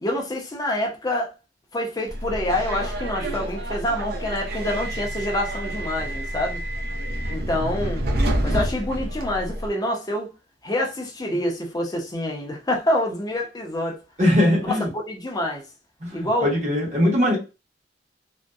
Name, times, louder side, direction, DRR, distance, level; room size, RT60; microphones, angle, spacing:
voice 1, 0.0-1.3 1.7-6.6 7.3-8.0 8.4-10.3 10.6-14.0 14.6-15.6 16.1-16.5, left 1 dB, 20° left, 0.5 m, -26 dB
Subway metro underground, 2.1-9.7, right 1 dB, 60° right, 0.5 m, -28 dB
voice 2, 14.2-14.9 16.0-17.4, left 1 dB, 40° right, 1.1 m, -20 dB
2.6 x 2.1 x 2.2 m
head